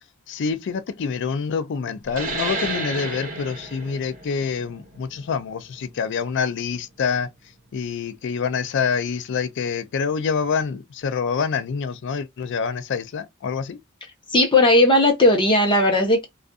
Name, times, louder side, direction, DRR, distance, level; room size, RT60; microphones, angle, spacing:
voice 1, 0.3-7.3 7.7-13.8, left 6 dB, 60° left, 0.4 m, -26 dB
sound 1, 2.1-7.2, right 2 dB, 40° right, 1.2 m, -32 dB
voice 2, 14.3-16.3, left 1 dB, 25° left, 0.8 m, -16 dB
2.5 x 2.4 x 2.3 m
head